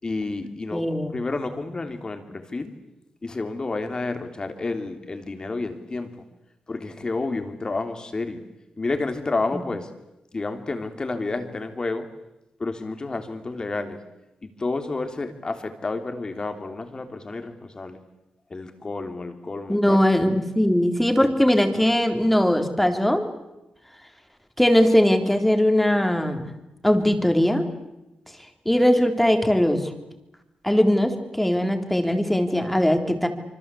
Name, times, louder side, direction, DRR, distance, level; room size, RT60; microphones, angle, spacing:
voice 1, 0.0-2.7 3.2-6.1 6.7-8.4 8.8-9.9 10.3-12.1 12.6-14.0 14.4-18.0 18.5-20.0, left 3 dB, 30° left, 7 dB, 3.3 m, -30 dB
voice 2, 0.7-1.1 19.7-23.2 24.6-26.5 26.8-27.7 28.7-29.8 30.6-33.3, left 1 dB, 5° left, 6 dB, 3.6 m, -20 dB
26.0 x 25.5 x 8.5 m, 0.95 s
cardioid pair, 105°, 3 cm